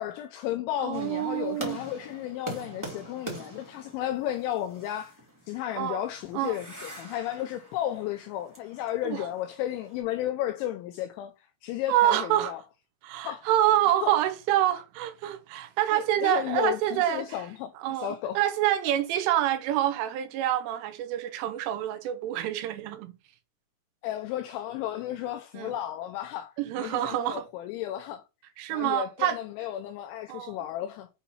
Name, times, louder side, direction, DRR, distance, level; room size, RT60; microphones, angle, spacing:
voice 1, 0.0-5.2 5.5-12.6 13.2-13.5 14.0-14.1 15.9-18.4 24.0-28.2 28.7-31.1, left 12 dB, 90° left, 2.7 m, -33 dB
voice 2, 0.8-1.8 5.8-6.0 6.3-6.6 9.0-9.3 11.9-12.5 13.0-17.4 17.8-23.1 25.6-25.7 26.6-27.4 28.6-29.4 30.3-30.6, right 13 dB, 80° right, 3.1 m, -27 dB
sound 1, 0.9-10.0, right 1 dB, 25° right, 0.4 m, -44 dB
8.2 x 2.8 x 5.4 m
omnidirectional pair, 6.0 m